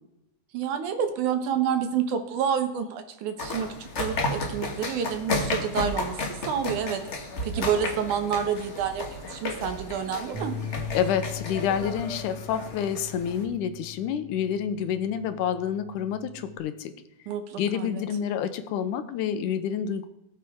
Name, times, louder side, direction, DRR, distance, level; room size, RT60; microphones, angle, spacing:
voice 1, 0.5-10.5 17.3-18.0, right 8 dB, 75° right, 7 dB, 2.6 m, -29 dB
sound 1, 3.4-13.4, left 2 dB, 70° left, 0.6 m, -33 dB
Bass guitar, 10.3-16.6, left 7 dB, 60° right, 2.9 m, -40 dB
voice 2, 10.9-16.9 17.6-20.1, left 8 dB, 85° left, 10 dB, 2.3 m, -28 dB
18.0 x 7.5 x 3.6 m, 0.88 s
omnidirectional pair, 3.6 m